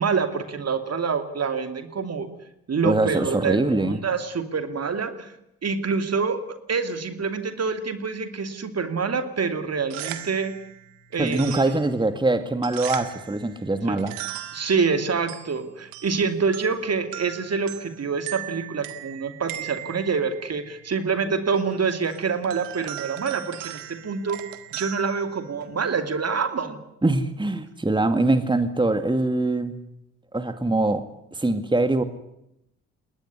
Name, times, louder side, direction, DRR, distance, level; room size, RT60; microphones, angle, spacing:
voice 1, 0.0-2.3 2.7-5.3 5.6-6.4 6.7-10.5 11.1-11.8 13.9-14.0 14.5-24.4 24.7-26.8, right 5 dB, 45° right, 9 dB, 2.9 m, -26 dB
voice 2, 2.8-4.0 11.2-14.2 27.0-29.8 30.3-32.0, right 2 dB, 15° right, 9 dB, 2.2 m, -23 dB
sound 1, 9.7-25.9, right 14 dB, 80° right, 1.8 m, -39 dB
21.5 x 18.5 x 9.9 m, 0.82 s
hypercardioid pair, 45°, 35 cm